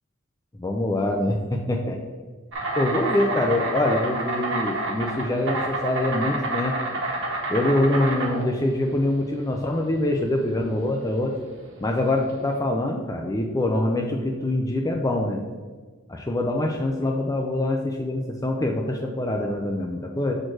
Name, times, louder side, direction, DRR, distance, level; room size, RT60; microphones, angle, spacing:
voice 1, 0.6-2.0 2.8-6.8 7.5-11.3 11.8-15.4 16.1-20.3, left 1 dB, 15° left, 1 dB, 0.5 m, -24 dB
Insect, 2.5-12.5, right 2 dB, 60° right, 1.5 m, -29 dB
6.1 x 4.4 x 4.6 m, 1.4 s
head